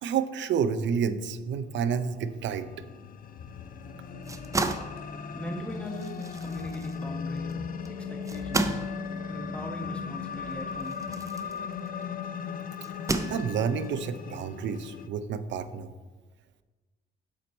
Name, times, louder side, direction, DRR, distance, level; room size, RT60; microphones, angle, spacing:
voice 1, 0.0-2.7 13.3-15.9, right 6 dB, 65° right, 12 dB, 0.5 m, -29 dB
sound 1, 2.0-15.1, left 6 dB, 45° left, 0.5 m, -37 dB
sound 2, 3.4-11.2, left 3 dB, 85° left, 1.5 m, -49 dB
sound 3, 4.1-12.2 12.8-13.9, right 2 dB, 15° right, 0.5 m, -34 dB
voice 2, 5.3-7.6 8.1-8.8 9.3-11.0, equal, 5° left, 2 dB, 1.2 m, -40 dB
7.4 x 4.2 x 4.3 m, 1.3 s
cardioid pair, 90°, 20 cm